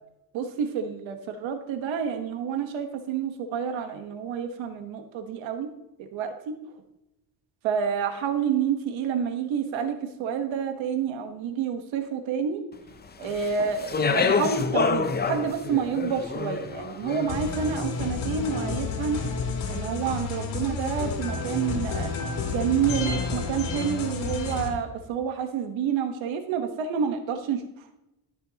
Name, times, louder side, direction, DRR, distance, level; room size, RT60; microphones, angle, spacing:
voice 1, 0.3-5.7 6.1-6.6 7.6-12.6 13.2-19.2 19.7-22.1 22.5-27.6, right 7 dB, 90° right, 6 dB, 1.2 m, -28 dB
Speech, 13.2-17.6, left 5 dB, 20° left, 0.6 m, -27 dB
sound 1, 17.3-24.7, left 5 dB, 85° left, 2.2 m, -30 dB
13.5 x 6.8 x 2.8 m, 0.90 s
cardioid pair, 110°, 45 cm